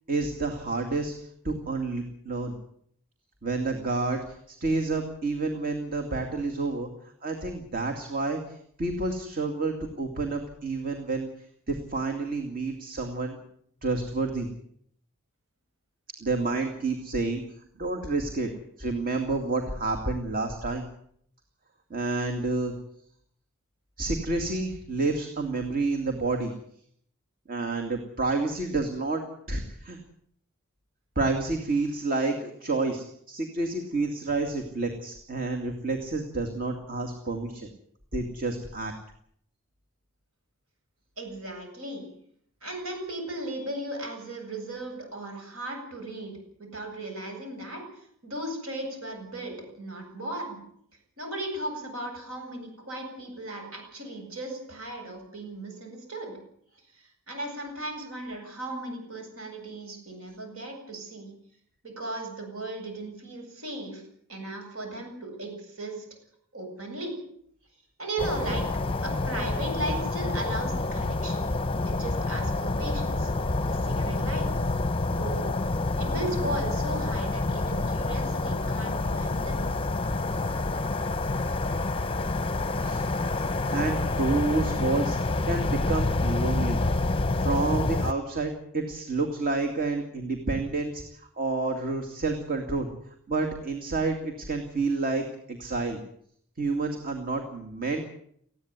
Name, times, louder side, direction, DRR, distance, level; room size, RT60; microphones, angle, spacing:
voice 1, 0.1-1.1 1.4-2.5 3.4-6.9 7.2-11.3 11.7-13.4 13.8-14.5 16.2-17.4 17.8-18.5 18.8-20.9 21.9-22.7 24.0-26.5 27.5-29.2 29.5-30.0 31.2-37.7 38.1-38.9 82.8-83.0 83.7-85.2 85.4-86.8 87.4-91.0 91.4-92.9 93.3-96.0 96.6-98.0, right 3 dB, 40° right, 3 dB, 2.4 m, -29 dB
voice 2, 41.2-42.0 42.6-46.3 46.6-50.6 51.2-56.4 56.9-61.3 61.8-64.0 64.3-66.0 66.5-67.1 68.0-68.6 69.0-71.4 71.9-73.3 73.7-74.5 75.0-75.5 76.0-79.7, right 2 dB, 70° right, 4 dB, 7.9 m, -36 dB
sound 1, 68.2-88.1, left 2 dB, 25° left, 0.8 m, -28 dB
19.5 x 15.5 x 9.6 m, 0.67 s
head